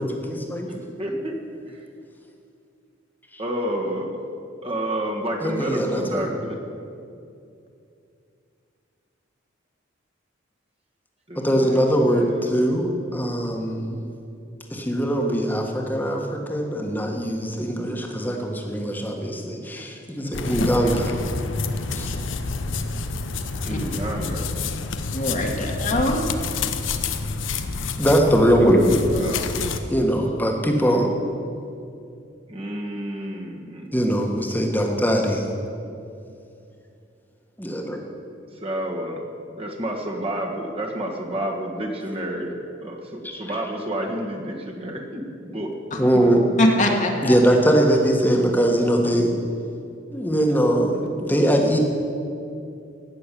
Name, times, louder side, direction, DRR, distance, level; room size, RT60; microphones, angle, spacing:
voice 1, 0.0-0.7 5.4-6.2 11.4-14.0 14.7-21.2 21.9-22.1 28.0-29.0 29.9-31.1 33.9-35.5 37.6-38.0 46.0-46.4 47.2-49.3 50.1-51.8, equal, 10° left, 2 dB, 1.5 m, -21 dB
voice 2, 0.7-1.4 1.6-1.9 3.4-4.3 4.6-6.6 11.3-12.5 23.6-24.5 29.1-29.7 32.5-33.9 38.5-39.3 39.5-45.7 46.1-46.3 49.0-49.1, right 1 dB, 30° right, 0 dB, 1.6 m, -30 dB
sound 1, 20.3-29.8, left 4 dB, 75° left, 0.9 m, -28 dB
voice 3, 25.1-26.2 45.9-46.0 46.6-47.6, left 1 dB, 40° left, 1 dB, 1.7 m, -22 dB
16.0 x 6.9 x 10.0 m, 2.5 s
head